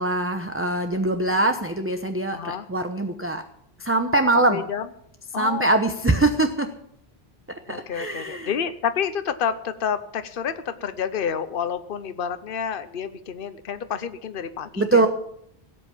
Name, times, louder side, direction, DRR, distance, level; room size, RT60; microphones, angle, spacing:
voice 1, 0.0-3.4 3.8-4.6 5.4-6.7 7.7-8.5 14.8-15.1, right 2 dB, 15° right, 6 dB, 0.9 m, -23 dB
voice 2, 2.3-2.7 4.5-4.8 5.3-5.7 7.7-15.1, left 7 dB, 60° left, 11 dB, 1.0 m, -29 dB
17.0 x 8.4 x 7.2 m, 0.71 s
omnidirectional pair, 1.1 m